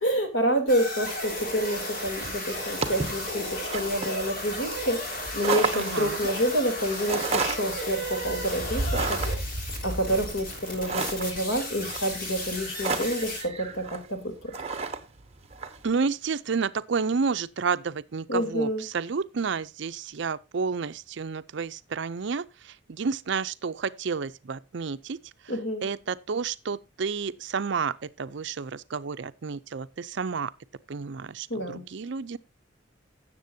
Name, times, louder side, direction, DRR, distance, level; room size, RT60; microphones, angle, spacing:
voice 1, 0.0-5.0 5.3-9.2 9.8-13.8 14.1-14.5 18.3-18.8 25.5-25.8 31.5-31.8, equal, 80° left, 3.2 m, -28 dB
sound 1, 0.7-13.4, left 1 dB, 45° left, 3.6 m, -34 dB
sound 2, 2.0-15.8, right 3 dB, 30° right, 1.1 m, -33 dB
voice 2, 5.7-6.2 15.8-18.7 18.9-22.4 23.0-25.2 25.8-27.9 28.2-30.5 30.9-32.4, right 5 dB, 60° right, 0.5 m, -30 dB
17.0 x 7.5 x 2.7 m
head